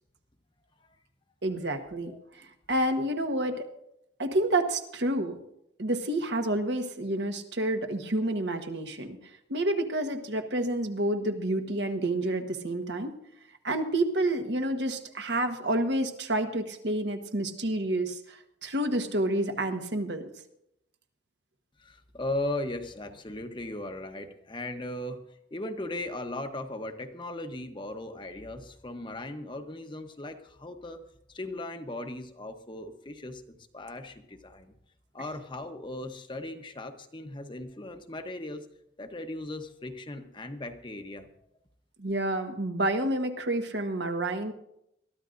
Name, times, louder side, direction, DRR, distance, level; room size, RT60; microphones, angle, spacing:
voice 1, 1.4-3.6 4.2-5.4 5.8-9.2 9.5-13.2 13.6-20.2 42.0-44.5, right 1 dB, 70° right, 5 dB, 1.3 m, -29 dB
voice 2, 21.8-31.0 31.3-34.7 35.1-38.7 39.0-41.3, left 1 dB, 25° left, 6 dB, 0.9 m, -38 dB
22.0 x 13.0 x 2.6 m, 0.79 s
head